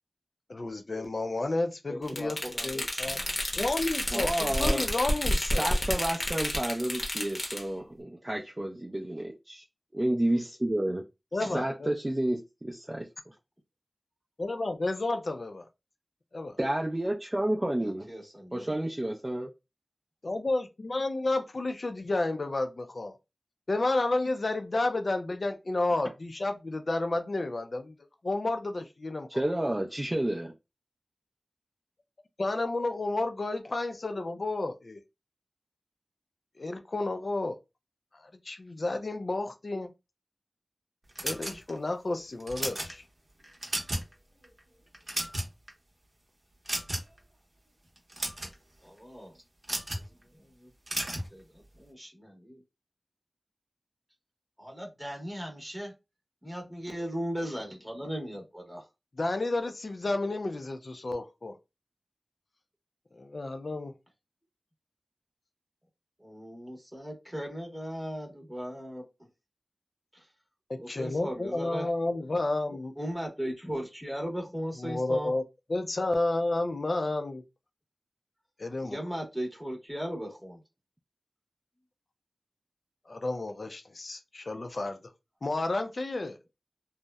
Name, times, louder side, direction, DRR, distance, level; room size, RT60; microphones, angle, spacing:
voice 1, 0.5-3.2 3.6-5.7 11.3-11.9 14.4-15.7 16.3-16.6 20.2-23.1 23.7-27.9 28.2-29.3 29.6-29.7 32.4-35.0 36.6-37.6 38.1-39.9 41.2-43.0 59.2-61.6 63.1-63.9 70.7-72.9 74.8-75.4 75.7-77.4 78.6-79.0 83.1-85.0 85.4-86.4, left 2 dB, 60° left, 0.3 m, -31 dB
voice 2, 1.9-3.6 11.4-11.6 17.8-18.8 48.8-49.3 49.9-50.0 50.6-50.7 51.3-52.6 54.6-55.9 56.4-58.8 66.2-69.0 70.8-71.9 73.0-75.3 78.8-80.6, equal, ahead, 0.8 m, -38 dB
sound 1, 2.1-7.6, left 1 dB, 40° left, 0.7 m, -30 dB
voice 3, 4.1-4.9 5.6-9.6 9.9-11.0 11.5-13.3 16.6-18.1 18.5-19.5 29.3-30.5, right 1 dB, 25° right, 0.4 m, -30 dB
sound 2, 41.2-41.9 42.4-42.9 43.4-44.1 44.4-44.6 44.9-45.7 46.7-47.2 48.0-48.5 49.6-50.1 50.9-51.3, right 1 dB, 45° right, 0.7 m, -33 dB
2.7 x 2.0 x 2.2 m
wide cardioid pair, 55°, 0 cm